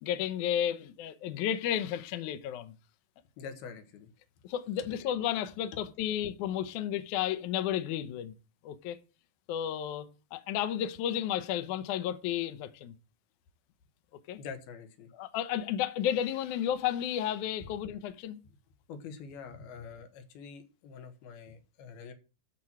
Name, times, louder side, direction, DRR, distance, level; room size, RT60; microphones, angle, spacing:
voice 1, 0.0-2.7 4.4-8.3 8.6-9.0 9.5-12.9 14.3-14.4 15.1-18.4, left 10 dB, 70° left, 2.1 m, -32 dB
voice 2, 3.4-4.1 14.4-15.1 18.9-22.1, left 6 dB, 85° left, 3.4 m, -45 dB
12.5 x 4.6 x 7.3 m
omnidirectional pair, 4.2 m